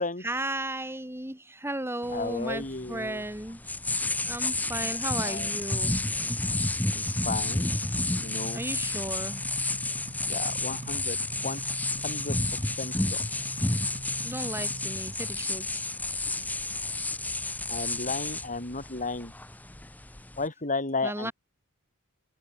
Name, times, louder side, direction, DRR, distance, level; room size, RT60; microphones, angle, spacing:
voice 1, 0.2-3.6 4.2-6.1 8.5-9.4 14.2-15.8 21.0-21.3, right 1 dB, 10° right, 4.7 m, -35 dB
sound 1, 2.0-20.5, left 2 dB, 5° left, 0.7 m, -31 dB
voice 2, 2.1-3.2 5.2-5.5 6.9-7.7 8.2-8.6 10.3-11.6 12.0-12.4 12.8-13.2 17.7-19.3 20.4-21.3, left 3 dB, 35° left, 5.5 m, -34 dB
sound 2, 6.8-15.3, equal, 30° right, 6.4 m, -42 dB
open air
head